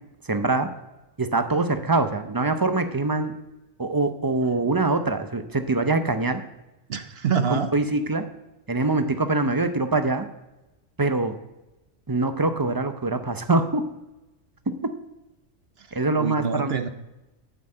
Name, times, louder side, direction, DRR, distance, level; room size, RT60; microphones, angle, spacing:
voice 1, 0.3-0.7 1.2-3.3 3.8-6.4 7.5-8.2 8.7-10.3 11.0-11.3 12.1-13.8 15.9-16.7, right 3 dB, 25° right, 8 dB, 0.5 m, -24 dB
voice 2, 6.9-7.7 16.2-16.9, right 6 dB, 55° right, 10 dB, 0.9 m, -25 dB
9.3 x 6.0 x 7.7 m, 0.98 s
omnidirectional pair, 1.3 m